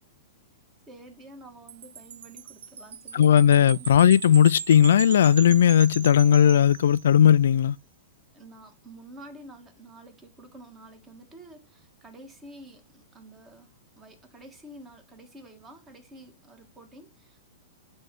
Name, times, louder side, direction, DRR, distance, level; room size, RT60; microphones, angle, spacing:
voice 1, 0.9-3.9 8.3-17.4, right 1 dB, 15° right, 1.6 m, -49 dB
Wind chime, 1.7-7.4, right 8 dB, 75° right, 0.9 m, -39 dB
voice 2, 3.1-7.8, left 9 dB, 80° left, 0.3 m, -17 dB
9.3 x 3.1 x 6.0 m
hypercardioid pair, 155°, 0 cm